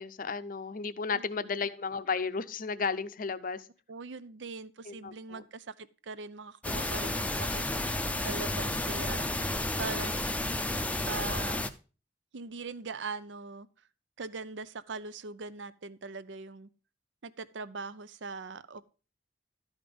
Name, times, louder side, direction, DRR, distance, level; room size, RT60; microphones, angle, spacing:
voice 1, 0.0-3.7 4.8-5.4 9.5-10.2, left 5 dB, 50° left, 13 dB, 0.6 m, -34 dB
voice 2, 3.9-7.6 7.9-9.4 9.8-10.2 11.0-11.6 12.3-13.7 14.2-16.7 17.2-18.9, right 4 dB, 85° right, 15 dB, 0.6 m, -41 dB
sound 1, 6.6-11.7, left 1 dB, 10° left, 0.5 m, -32 dB
12.0 x 5.1 x 5.2 m, 0.35 s
head